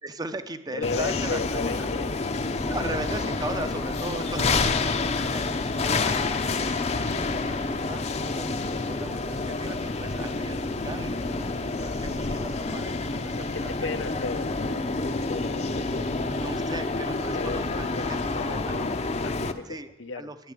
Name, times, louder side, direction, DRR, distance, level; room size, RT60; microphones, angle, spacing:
voice 1, 0.0-1.9 2.6-4.8 5.3-14.0 16.2-18.9 19.6-20.5, right 2 dB, 20° right, 10 dB, 0.6 m, -38 dB
voice 2, 0.7-2.1 4.1-4.6 5.4-5.5 8.6-8.8 12.0-12.4 13.3-16.2 17.3-20.3, left 4 dB, 75° left, 12 dB, 0.7 m, -36 dB
sound 1, 0.8-19.5, left 3 dB, 35° left, 0.6 m, -28 dB
10.5 x 9.5 x 9.9 m, 1.1 s
head